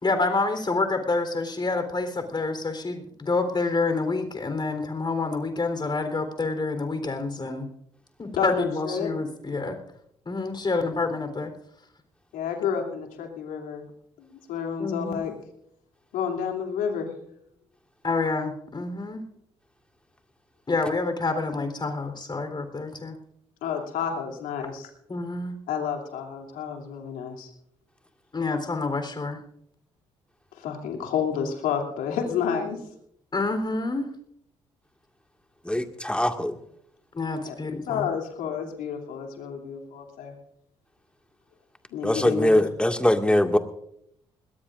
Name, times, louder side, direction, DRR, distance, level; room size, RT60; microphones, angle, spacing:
voice 1, 0.0-7.7 8.2-9.8 10.3-11.5 14.8-15.3 18.0-19.2 20.7-23.1 25.1-25.5 28.3-29.4 33.3-34.1 37.1-38.1, left 3 dB, 30° left, 7 dB, 3.8 m, -28 dB
voice 2, 8.4-9.1 12.3-13.8 14.3-15.3 16.1-17.1 23.6-24.9 25.7-27.5 30.6-32.8 37.4-37.5 37.9-40.3 41.9-42.5, left 7 dB, 70° left, 2 dB, 3.0 m, -30 dB
voice 3, 35.6-36.6 42.0-43.6, left 1 dB, 5° left, 5 dB, 2.0 m, -22 dB
21.0 x 19.5 x 2.6 m, 0.72 s
hypercardioid pair, 45°, 15 cm